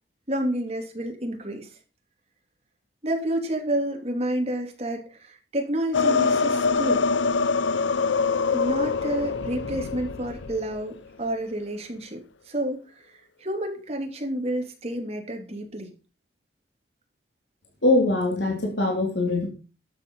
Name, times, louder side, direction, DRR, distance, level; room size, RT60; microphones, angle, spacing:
voice 1, 0.3-1.7 3.0-7.0 8.5-15.9, right 1 dB, 35° right, 3 dB, 3.0 m, -30 dB
sound 1, 5.9-10.8, left 4 dB, 90° left, 0.7 m, -24 dB
voice 2, 17.8-19.5, left 2 dB, 70° left, 2 dB, 3.3 m, -22 dB
12.0 x 7.9 x 5.6 m, 0.33 s
head